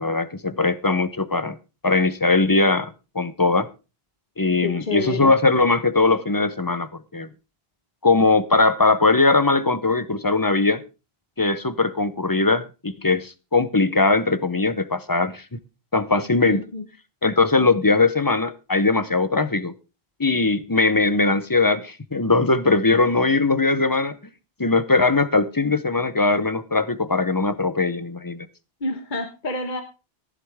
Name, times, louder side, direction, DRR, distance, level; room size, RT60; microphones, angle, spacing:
voice 1, 0.0-1.6 1.8-3.7 4.4-7.3 8.0-10.8 11.4-15.6 15.9-16.6 17.2-19.7 20.2-24.2 24.6-28.5, left 3 dB, 25° left, 0.7 m, -20 dB
voice 2, 4.6-5.3 16.4-16.8 28.8-29.8, left 3 dB, 50° left, 1.5 m, -28 dB
14.5 x 11.0 x 3.5 m
omnidirectional pair, 1.0 m